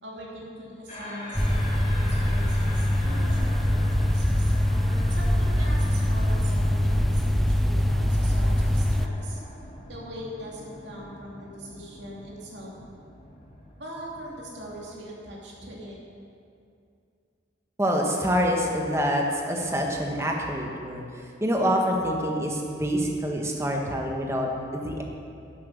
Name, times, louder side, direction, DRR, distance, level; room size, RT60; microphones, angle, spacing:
voice 1, 0.0-4.5 5.1-9.4 9.9-12.7 13.8-16.0, equal, 70° right, -4 dB, 2.7 m, -41 dB
sound 1, 0.9-14.9, left 1 dB, 40° left, 2.7 m, -43 dB
sound 2, 1.3-9.1, left 1 dB, ahead, 0.4 m, -23 dB
voice 2, 17.8-25.0, equal, 15° right, 0 dB, 1.3 m, -26 dB
12.0 x 7.8 x 6.7 m, 2.5 s
head